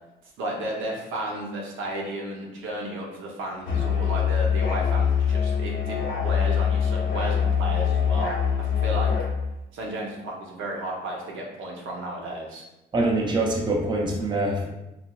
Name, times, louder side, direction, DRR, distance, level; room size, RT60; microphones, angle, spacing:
voice 1, 0.4-8.3 8.6-9.1 9.7-12.6, right 1 dB, 80° right, -1 dB, 0.7 m, -33 dB
Musical instrument, 3.7-9.4, left 7 dB, 80° left, 0.9 m, -24 dB
voice 2, 12.9-14.7, right 2 dB, 25° right, -1 dB, 0.5 m, -24 dB
3.0 x 2.4 x 2.3 m, 0.94 s
cardioid pair, 90°, 20 cm